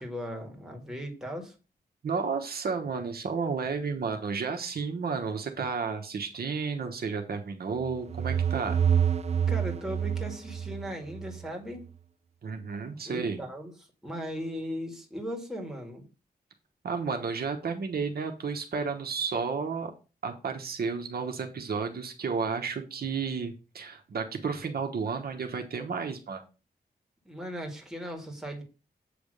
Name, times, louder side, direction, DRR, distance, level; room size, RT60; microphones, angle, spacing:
voice 1, 0.0-1.5 9.5-11.9 13.1-13.7 14.0-16.0 27.2-28.6, equal, 5° right, 1 dB, 2.1 m, -37 dB
voice 2, 2.0-8.8 12.4-13.4 16.8-19.9 20.2-26.4, right 5 dB, 70° right, 4 dB, 1.1 m, -32 dB
sound 1, 7.8-11.5, right 8 dB, 40° right, 0.5 m, -28 dB
8.0 x 3.5 x 6.5 m, 0.32 s
wide cardioid pair, 120°, 17 cm